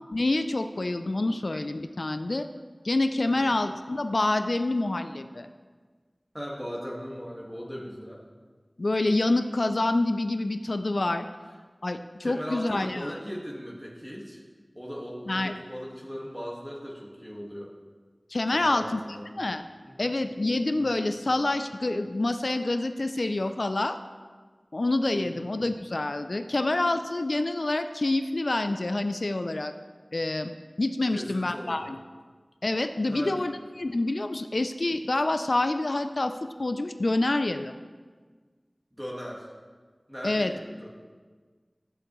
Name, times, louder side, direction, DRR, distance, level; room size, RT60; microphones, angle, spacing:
voice 1, 0.1-2.5 2.8-5.5 8.8-11.3 11.8-13.1 15.3-15.5 18.3-19.0 19.4-19.6 20.0-24.0 24.7-29.7 30.1-30.5 30.8-32.0 32.6-36.3 36.6-37.7 40.2-40.5, left 2 dB, 85° left, 9 dB, 0.4 m, -27 dB
voice 2, 6.3-8.2 12.2-14.4 14.7-17.8 18.5-19.2 19.8-20.1 20.7-20.8 25.2-25.4 31.0-31.9 33.1-33.5 38.9-39.5 40.1-40.9, equal, 5° right, -3 dB, 1.7 m, -38 dB
13.5 x 7.8 x 3.1 m, 1.5 s
wide cardioid pair, 40°, 0 cm